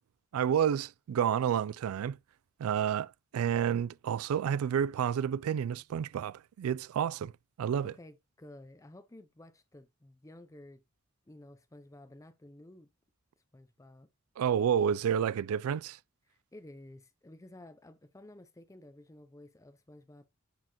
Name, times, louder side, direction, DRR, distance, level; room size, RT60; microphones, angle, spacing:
voice 1, 0.3-2.2 2.6-7.3 7.6-7.9 14.4-16.0, right 8 dB, 80° right, 0.3 m, -30 dB
voice 2, 7.8-10.8 11.3-12.9 13.5-14.1 16.2-20.3, left 1 dB, 15° left, 0.5 m, -53 dB
9.4 x 4.5 x 2.9 m
head